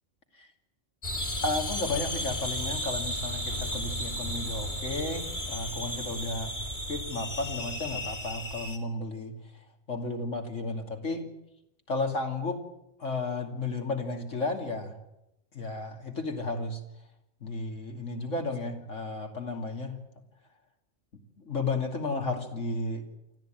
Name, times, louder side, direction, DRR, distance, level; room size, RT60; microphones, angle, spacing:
sound 1, 1.0-8.8, equal, 40° left, 2.9 m, -34 dB
voice 1, 1.4-6.5 6.9-9.3 9.9-11.3 11.9-12.6 13.0-15.0 15.5-16.8 17.4-20.0 21.4-23.1, left 2 dB, 75° left, 4 dB, 3.0 m, -33 dB
25.0 x 14.5 x 9.1 m, 0.86 s
omnidirectional pair, 1.3 m